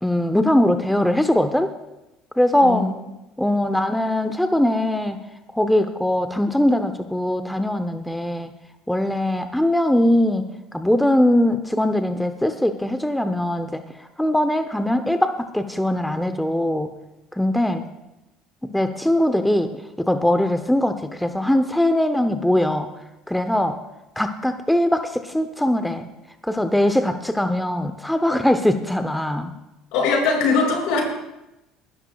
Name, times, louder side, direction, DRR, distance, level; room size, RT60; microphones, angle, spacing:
voice 1, 0.0-1.7 2.4-2.9 3.4-5.2 5.5-8.5 8.9-10.4 10.7-13.8 14.2-16.9 17.4-17.8 18.6-19.7 20.0-22.9 23.3-23.8 24.2-26.1 26.4-29.5, left 1 dB, 5° left, 8 dB, 0.7 m, -21 dB
voice 2, 2.6-2.9 29.9-31.0, left 4 dB, 75° left, -2 dB, 5.8 m, -20 dB
25.5 x 12.0 x 2.3 m, 0.94 s
supercardioid pair, 110°, 0 cm